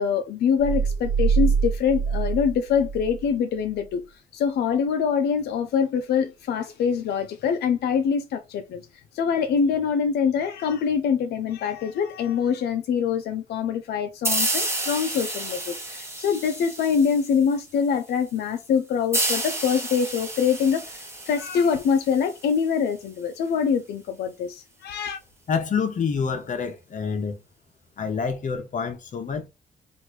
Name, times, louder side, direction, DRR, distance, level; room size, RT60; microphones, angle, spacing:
voice 1, 0.0-4.0 4.3-8.8 9.1-25.2, left 7 dB, 90° left, 0.4 m, -24 dB
sound 1, 0.6-3.3, right 6 dB, 80° right, 0.6 m, -24 dB
sound 2, 14.2-17.6 19.1-22.6, right 1 dB, 15° right, 1.0 m, -30 dB
voice 2, 25.5-27.4 28.0-29.5, left 6 dB, 50° left, 0.8 m, -27 dB
3.0 x 2.5 x 3.0 m
cardioid pair, 95°, 16 cm